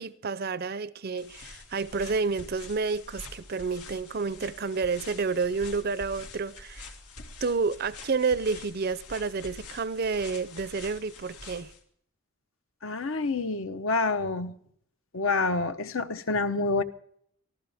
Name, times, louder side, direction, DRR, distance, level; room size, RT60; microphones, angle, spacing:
voice 1, 0.0-6.9 7.4-11.7, right 4 dB, 45° right, 0.5 m, -30 dB
sound 1, 1.2-11.8, left 3 dB, 90° left, 2.1 m, -46 dB
voice 2, 12.8-14.5 15.1-16.8, left 3 dB, 65° left, 0.9 m, -27 dB
24.0 x 15.0 x 3.5 m
head